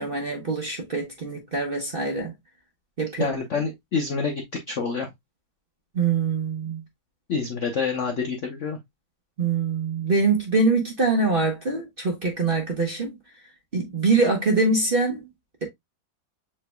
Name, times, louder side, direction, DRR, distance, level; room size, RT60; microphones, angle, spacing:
voice 1, 0.0-2.3 3.0-3.3 5.9-6.8 9.4-13.1 13.7-15.2, right 3 dB, 40° right, 0.9 m, -24 dB
voice 2, 3.2-5.1 7.3-8.8, left 5 dB, 60° left, 0.8 m, -27 dB
7.2 x 3.2 x 2.2 m
omnidirectional pair, 2.1 m